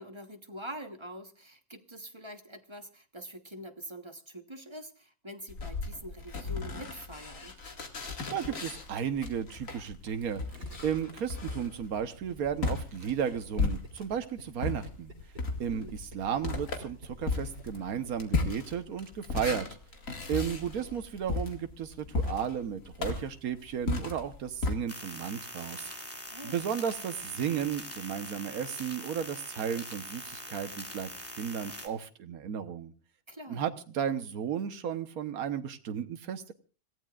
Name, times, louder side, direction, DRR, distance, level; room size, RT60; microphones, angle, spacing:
voice 1, 0.0-7.6 15.7-16.0 26.3-26.6 33.3-33.6, equal, 20° right, 7 dB, 1.1 m, -45 dB
sound 1, 5.5-14.2 14.6-24.7, left 3 dB, 65° left, 2.4 m, -35 dB
voice 2, 8.3-10.4 10.8-15.1 15.6-19.7 20.3-25.9 26.4-31.1 31.4-32.9 33.5-36.5, right 8 dB, 80° right, 9 dB, 1.5 m, -34 dB
Gurgling, 10.5-18.4, right 1 dB, 50° right, 3.8 m, -50 dB
sound 2, 24.9-31.9, equal, 10° left, 2.2 m, -43 dB
26.5 x 16.0 x 2.4 m, 0.37 s
omnidirectional pair, 1.5 m